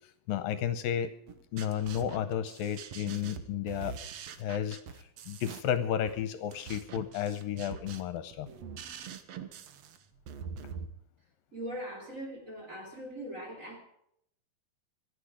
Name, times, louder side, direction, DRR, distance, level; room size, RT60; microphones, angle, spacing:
voice 1, 0.3-1.1 1.5-4.0 4.4-4.8 5.3-8.5, left 9 dB, 75° left, 12 dB, 2.4 m, -32 dB
sound 1, 1.3-10.9, right 7 dB, 70° right, 1.6 m, -44 dB
voice 2, 11.5-13.8, equal, 20° right, 2 dB, 3.2 m, -41 dB
25.0 x 8.5 x 4.9 m, 0.74 s
omnidirectional pair, 4.2 m